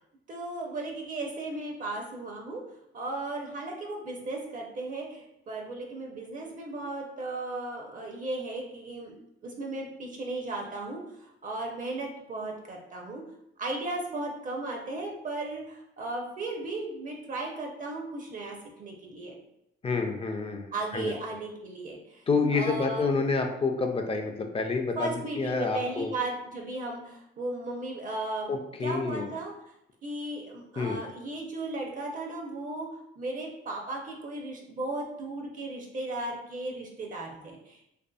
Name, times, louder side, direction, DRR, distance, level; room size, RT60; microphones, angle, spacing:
voice 1, 0.3-2.6 2.9-13.2 13.6-19.4 20.7-22.2 22.5-23.1 25.0-28.5 28.8-29.5 30.0-32.9 33.2-37.9, right 2 dB, 40° right, 1 dB, 0.5 m, -36 dB
voice 2, 19.8-21.1 22.3-26.1 28.5-29.3 30.8-31.0, left 4 dB, 30° left, 4 dB, 0.4 m, -28 dB
2.6 x 2.4 x 2.3 m, 0.80 s
cardioid pair, 90°, 20 cm